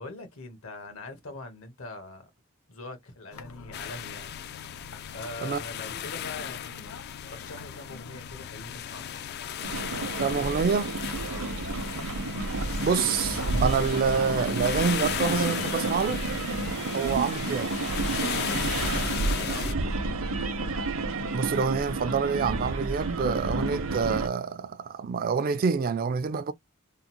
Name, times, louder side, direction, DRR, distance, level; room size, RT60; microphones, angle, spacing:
voice 1, 0.0-2.3 2.7-4.4 5.1-7.0 7.3-9.1 11.3-11.6 18.3-20.0, left 2 dB, 75° left, 1.2 m, -42 dB
sound 1, 3.3-13.8, left 4 dB, 90° left, 0.8 m, -46 dB
sound 2, 3.7-19.7, left 9 dB, 50° left, 0.3 m, -36 dB
sound 3, 9.6-24.3, right 3 dB, 75° right, 0.7 m, -30 dB
voice 2, 10.2-11.0 12.8-16.2 16.9-17.7 21.3-26.5, right 5 dB, 45° right, 0.4 m, -27 dB
3.7 x 2.0 x 2.9 m
head